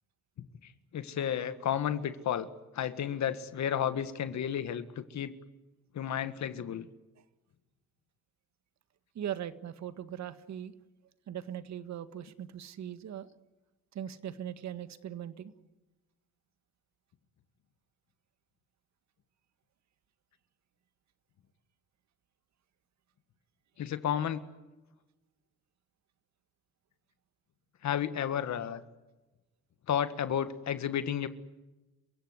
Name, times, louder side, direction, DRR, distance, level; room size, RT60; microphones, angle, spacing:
voice 1, 0.4-2.5 2.7-5.3 5.9-6.9 23.8-24.4 27.8-28.8 29.9-31.3, left 9 dB, 65° left, 11 dB, 1.8 m, -32 dB
voice 2, 9.2-10.7 11.3-13.3 13.9-15.5, right 10 dB, 65° right, 13 dB, 1.7 m, -40 dB
29.0 x 16.5 x 9.7 m, 1.1 s
cardioid pair, 90°, 30 cm